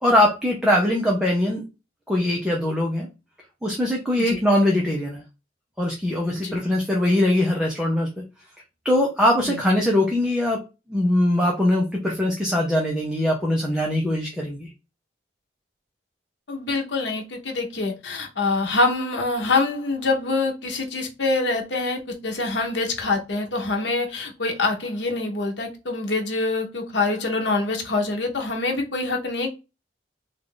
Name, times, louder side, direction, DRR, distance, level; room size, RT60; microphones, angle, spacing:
voice 1, 0.0-1.6 2.1-3.1 3.6-5.2 5.8-8.1 8.8-10.6 10.9-14.7, left 1 dB, 5° right, -1 dB, 0.7 m, -21 dB
voice 2, 16.5-29.5, left 3 dB, 80° left, 2 dB, 0.9 m, -25 dB
3.5 x 2.5 x 3.8 m, 0.28 s
head